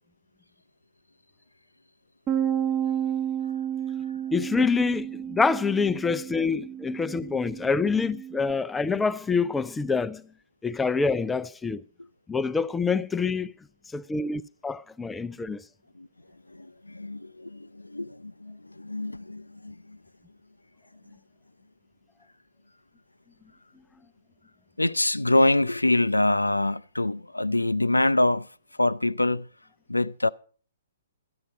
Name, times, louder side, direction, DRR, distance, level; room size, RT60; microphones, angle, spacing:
Bass guitar, 2.3-8.5, right 9 dB, 20° right, 1.0 m, -31 dB
voice 1, 4.3-10.2 10.6-11.8 12.3-13.5 13.9-15.6, left 4 dB, 10° left, 0.5 m, -26 dB
voice 2, 16.5-20.0 24.8-28.5 28.8-29.5 29.9-30.3, left 1 dB, 85° left, 0.5 m, -25 dB
13.0 x 9.5 x 5.5 m
figure-of-eight pair, 120°, 0 cm